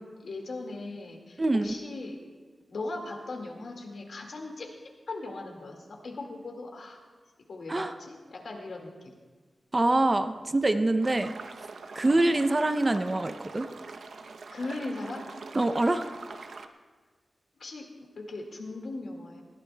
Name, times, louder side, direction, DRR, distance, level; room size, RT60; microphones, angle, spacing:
voice 1, 0.2-2.2 2.7-4.7 5.1-7.0 7.5-9.2 12.0-12.2 14.5-15.3 17.6-19.4, left 2 dB, 60° left, 2 dB, 1.8 m, -39 dB
voice 2, 1.4-1.7 7.7-7.9 9.7-11.3 12.0-13.7 15.5-16.0, right 2 dB, 20° right, 9 dB, 0.5 m, -25 dB
sound 1, 11.0-16.7, right 4 dB, 70° right, 0.6 m, -44 dB
20.0 x 16.0 x 2.2 m, 1.4 s
wide cardioid pair, 170°, 0 cm